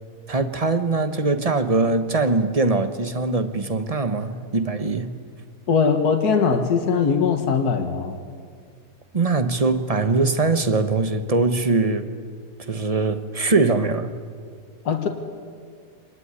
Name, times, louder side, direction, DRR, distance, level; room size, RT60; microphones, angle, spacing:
voice 1, 0.3-5.2 9.1-12.1 12.6-14.2, right 3 dB, 25° right, 1.1 m, -22 dB
voice 2, 5.7-8.2 14.9-15.1, left 5 dB, 70° left, 2.0 m, -20 dB
26.0 x 20.0 x 9.7 m
omnidirectional pair, 1.7 m